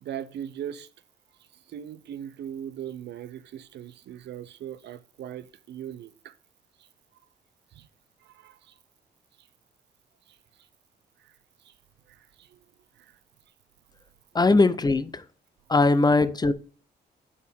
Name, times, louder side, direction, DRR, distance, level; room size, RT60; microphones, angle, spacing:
voice 1, 0.0-0.9 1.7-6.3 6.8-6.9 7.7-7.9 8.2-8.8 9.4-9.5 10.3-10.7 11.2-11.3 11.6-11.7 12.1-12.6 13.0-13.2, right 10 dB, 75° right, 0.5 m, -40 dB
voice 2, 14.3-15.2 15.7-16.5, left 3 dB, 20° left, 0.6 m, -20 dB
8.3 x 4.5 x 3.5 m
cardioid pair, 75°, 18 cm